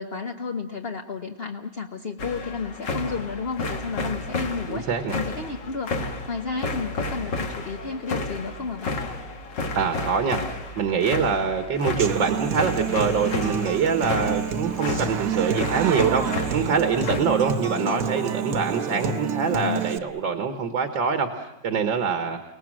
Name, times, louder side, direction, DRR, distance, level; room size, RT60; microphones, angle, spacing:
voice 1, 0.0-9.0 17.8-18.1 19.5-19.8, left 4 dB, 35° left, 4 dB, 1.1 m, -32 dB
sound 1, 2.2-17.2, left 2 dB, 65° left, 2.5 m, -32 dB
voice 2, 4.7-5.2 9.7-10.4 10.8-22.4, right 5 dB, 75° right, 7 dB, 2.2 m, -24 dB
Human voice / Acoustic guitar, 12.0-20.0, right 7 dB, 55° right, 1.3 m, -29 dB
29.5 x 19.0 x 7.6 m, 0.95 s
omnidirectional pair, 2.1 m